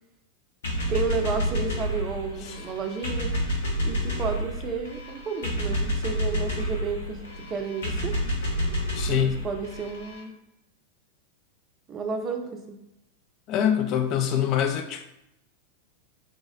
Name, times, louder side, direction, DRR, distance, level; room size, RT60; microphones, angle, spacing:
sound 1, 0.6-10.2, equal, 65° left, 0.8 m, -29 dB
voice 1, 0.9-3.3 3.8-8.1 9.2-10.3 11.9-12.8, right 5 dB, 25° right, 4 dB, 0.5 m, -32 dB
voice 2, 8.9-9.5 13.5-15.1, left 9 dB, 40° left, 6 dB, 0.4 m, -25 dB
3.4 x 2.0 x 3.7 m, 0.85 s
figure-of-eight pair, 90°, 0 cm